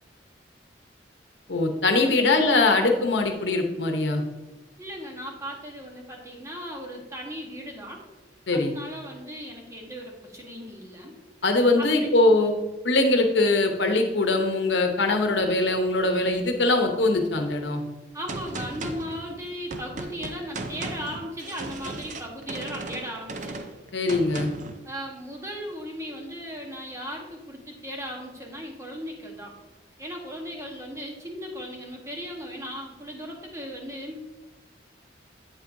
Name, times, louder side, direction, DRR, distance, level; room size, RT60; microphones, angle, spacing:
voice 1, 1.5-4.2 8.5-8.7 11.4-12.5 12.8-17.8 23.9-24.5, left 2 dB, 75° left, 4 dB, 0.9 m, -22 dB
voice 2, 4.8-8.0 8.5-11.1 11.8-12.1 18.1-23.6 24.8-29.5 30.0-34.3, equal, 15° right, 0 dB, 1.2 m, -37 dB
Gunshot gunfire, 18.3-24.8, right 2 dB, 45° right, 0.6 m, -36 dB
8.4 x 7.4 x 2.7 m, 1.1 s
head